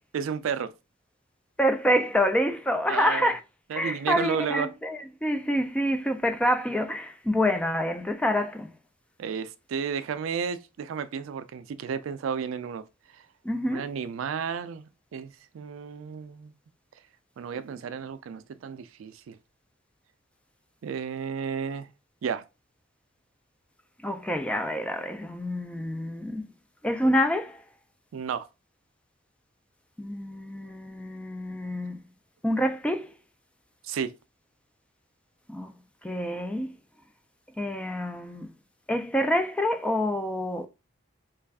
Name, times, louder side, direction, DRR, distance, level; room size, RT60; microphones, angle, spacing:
voice 1, 0.1-0.7 2.9-3.3 3.7-4.7 9.2-12.8 13.7-16.5 17.4-19.4 20.8-21.9 22.2-22.4 28.1-28.5 33.8-34.1, right 6 dB, 75° right, 0.3 m, -32 dB
voice 2, 1.6-3.4 3.7-8.7 13.4-13.9 24.0-26.4 26.8-27.6 30.0-32.0 32.4-33.1 35.5-35.7 36.0-36.7 37.6-38.5 38.9-40.7, equal, 5° left, 0.3 m, -27 dB
3.2 x 2.3 x 3.4 m
head